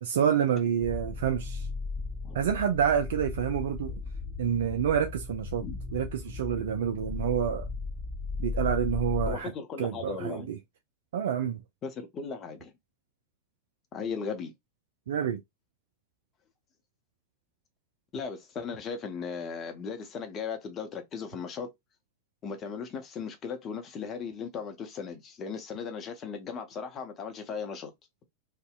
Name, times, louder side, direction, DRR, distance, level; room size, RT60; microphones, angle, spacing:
voice 1, 0.0-1.7 2.3-3.9 4.4-5.6 5.9-7.7 8.4-9.5 9.8-10.6 11.1-11.6 15.1-15.4, right 8 dB, 60° right, 0.3 m, -28 dB
sound 1, 0.8-9.4, left 4 dB, 10° left, 0.9 m, -36 dB
voice 2, 9.3-10.5 11.8-12.7 13.9-14.5 18.1-21.7 22.4-27.9, left 6 dB, 30° left, 0.6 m, -37 dB
2.6 x 2.0 x 2.3 m
figure-of-eight pair, 90°, 0 cm